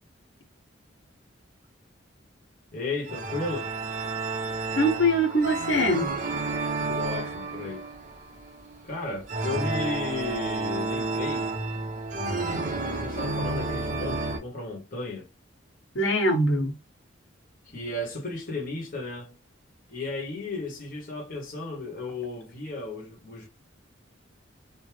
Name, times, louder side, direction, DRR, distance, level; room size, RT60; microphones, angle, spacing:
voice 1, 2.7-3.7 6.8-7.9 8.8-11.5 12.9-15.3 17.7-19.4 19.9-23.5, left 2 dB, 45° left, 1.0 m, -34 dB
sound 1, 3.1-14.4, right 3 dB, 40° right, 0.8 m, -31 dB
voice 2, 4.8-6.1 15.9-16.7, equal, 75° left, 1.2 m, -23 dB
3.3 x 2.1 x 3.2 m
head